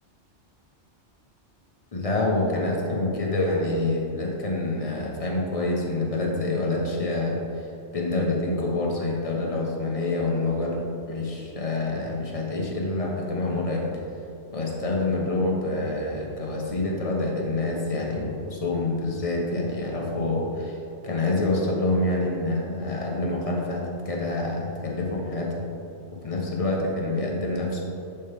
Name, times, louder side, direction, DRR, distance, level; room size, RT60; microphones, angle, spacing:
voice 1, 1.9-7.7 7.9-14.0 14.5-20.8 21.0-25.7 26.1-27.8, left 2 dB, 30° left, -2 dB, 1.1 m, -27 dB
10.5 x 4.4 x 3.5 m, 2.9 s
omnidirectional pair, 1.2 m